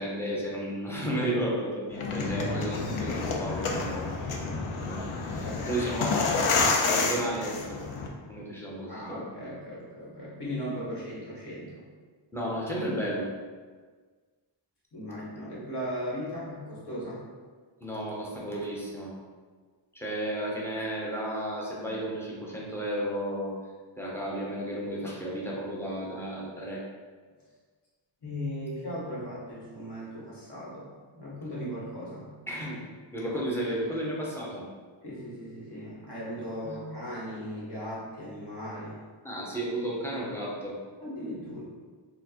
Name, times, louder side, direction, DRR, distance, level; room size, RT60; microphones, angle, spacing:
voice 1, 0.0-4.5 4.8-5.0 5.3-6.1 6.6-7.9 8.3-9.2 12.3-13.3 17.8-19.1 19.9-23.5 24.0-26.8 32.5-32.8 33.1-34.6 36.6-37.0 39.2-40.8, right 1 dB, 5° left, -5 dB, 0.5 m, -33 dB
sound 1, 1.9-8.1, left 4 dB, 85° left, 0.6 m, -29 dB
voice 2, 5.3-6.2 6.7-7.5 8.9-11.8 14.9-17.2 28.2-30.9 31.1-32.3 35.0-39.0 41.0-41.6, equal, 55° left, -8 dB, 1.3 m, -38 dB
4.3 x 2.1 x 2.8 m, 1.5 s
wide cardioid pair, 170°, 48 cm